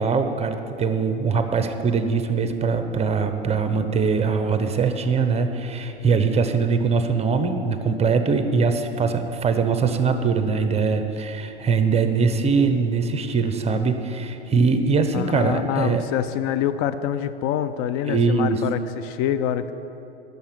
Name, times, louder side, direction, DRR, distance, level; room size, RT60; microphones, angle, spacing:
voice 1, 0.0-16.0 18.0-18.6, right 5 dB, 20° right, 8 dB, 0.9 m, -22 dB
voice 2, 15.1-19.7, left 10 dB, 50° left, 12 dB, 0.6 m, -26 dB
10.5 x 6.9 x 8.3 m, 3.0 s
hypercardioid pair, 100°, 30 cm